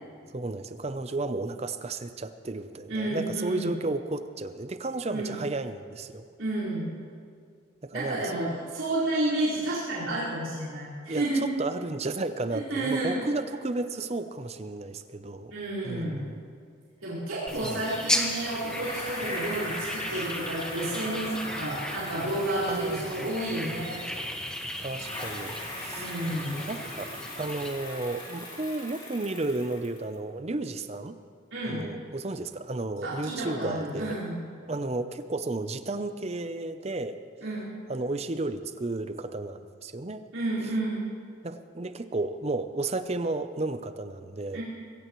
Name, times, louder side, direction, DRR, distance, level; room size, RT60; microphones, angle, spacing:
voice 1, 0.3-6.3 7.8-8.6 11.1-15.5 15.8-16.4 17.6-17.8 22.7-23.2 24.8-26.1 26.5-27.1 27.4-31.2 31.6-34.2 34.7-37.2 37.9-40.3 41.4-44.6, right 2 dB, 30° right, 10 dB, 0.6 m, -33 dB
voice 2, 2.9-3.7 5.1-5.4 6.4-6.9 7.9-11.4 12.5-13.2 15.5-16.2 17.0-24.0 26.0-26.6 31.5-31.9 33.0-34.4 37.4-37.8 40.3-41.1 44.5-44.6, right 1 dB, 90° right, -10 dB, 4.7 m, -31 dB
sound 1, 17.5-27.7, left 1 dB, 5° left, 1.0 m, -36 dB
Bicycle, 18.6-24.5 24.9-30.1, left 1 dB, 25° left, 3.1 m, -39 dB
24.0 x 16.0 x 3.1 m, 2.2 s
head